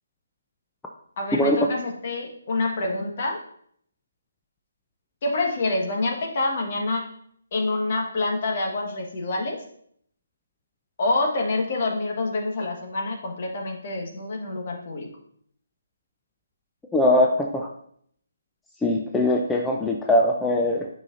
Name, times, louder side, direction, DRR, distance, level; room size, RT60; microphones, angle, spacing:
voice 1, 1.2-3.4 5.2-7.0 7.5-9.6 11.0-15.1, left 2 dB, 45° left, 1 dB, 1.5 m, -27 dB
voice 2, 16.9-17.7 18.8-20.9, left 1 dB, 5° left, 0 dB, 0.5 m, -21 dB
9.5 x 5.7 x 2.6 m, 0.65 s
figure-of-eight pair, 145°, 0 cm